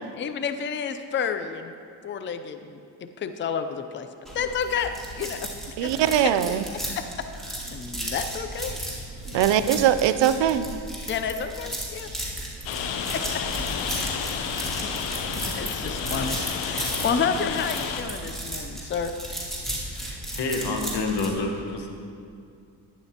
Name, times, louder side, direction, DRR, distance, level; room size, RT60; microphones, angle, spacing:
voice 1, 0.1-1.7 2.0-4.1 4.3-5.5 5.8-5.9 6.2-6.3 6.9-7.3 7.7-8.8 9.3-9.5 11.1-12.1 13.1-13.4 14.8-14.9 15.2-19.1, left 6 dB, 25° left, 9 dB, 0.5 m, -30 dB
sound 1, 4.3-21.3, right 1 dB, ahead, 2.4 m, -35 dB
voice 2, 5.8-6.7 9.3-10.7, right 10 dB, 75° right, 12 dB, 0.5 m, -21 dB
Rain, 12.7-18.0, left 7 dB, 90° left, 0.8 m, -31 dB
voice 3, 20.3-21.9, left 3 dB, 65° left, 2 dB, 1.3 m, -28 dB
11.5 x 9.7 x 2.9 m, 2.3 s
cardioid pair, 85°, 44 cm